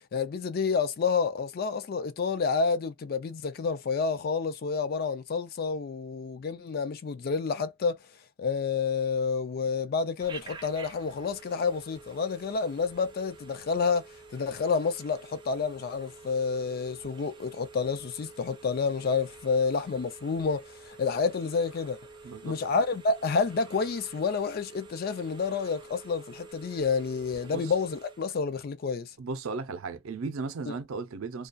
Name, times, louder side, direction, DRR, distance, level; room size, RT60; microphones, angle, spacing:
voice 1, 0.1-8.0 8.4-14.0 14.3-22.0 22.4-29.1, left 5 dB, 45° left, 0.3 m, -29 dB
Telephone, 10.2-28.3, right 3 dB, 20° right, 0.5 m, -49 dB
voice 2, 22.2-22.6 27.5-27.7 29.2-31.5, right 4 dB, 85° right, 0.5 m, -36 dB
2.3 x 2.2 x 2.4 m
head